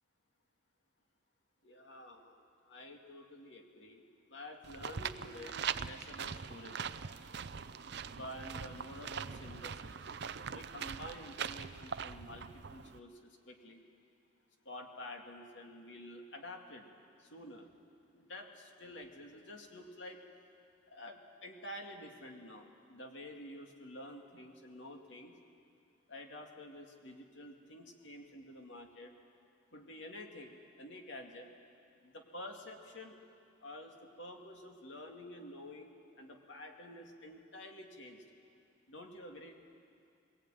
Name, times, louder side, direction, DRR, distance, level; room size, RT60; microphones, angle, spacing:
voice 1, 1.6-4.0 4.3-6.8 8.1-10.0 10.5-13.8 14.6-16.8 17.2-17.7 18.1-20.2 20.9-25.4 26.1-29.1 29.7-31.5 32.0-33.2 33.6-38.2 38.9-39.6, left 1 dB, 75° left, 2 dB, 2.4 m, -49 dB
sound 1, 4.6-13.0, right 7 dB, 60° right, 0.6 m, -42 dB
21.5 x 18.5 x 9.1 m, 2.4 s
head